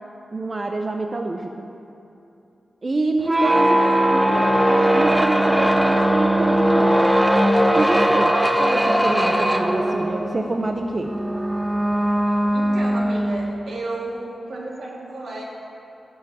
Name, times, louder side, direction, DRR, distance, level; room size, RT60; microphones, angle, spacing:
voice 1, 0.3-1.7 2.8-3.7 4.0-4.4 4.7-7.1 7.8-11.1, right 2 dB, 35° right, 4 dB, 0.7 m, -26 dB
sound 1, 3.2-13.5, right 1 dB, 10° right, 1.1 m, -19 dB
voice 2, 3.3-4.1 12.2-15.4, right 2 dB, 80° right, -4 dB, 3.1 m, -32 dB
17.5 x 6.0 x 8.7 m, 2.8 s
wide cardioid pair, 110°, 0 cm